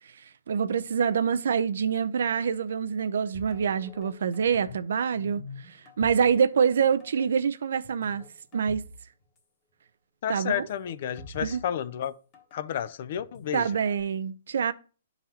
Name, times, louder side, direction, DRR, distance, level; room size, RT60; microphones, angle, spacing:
voice 1, 0.5-8.2 8.5-8.8 10.3-10.7 11.4-11.6 13.5-14.7, right 7 dB, 75° right, 0.4 m, -26 dB
sound 1, 3.3-4.9 5.2-6.8 7.0-7.2 7.8-9.0 9.2-9.3 10.5-12.6 13.2-14.0, left 3 dB, 30° left, 1.3 m, -46 dB
voice 2, 10.2-12.1 12.5-13.7, left 10 dB, 50° left, 0.4 m, -31 dB
11.5 x 4.0 x 2.8 m
hypercardioid pair, 150°, 0 cm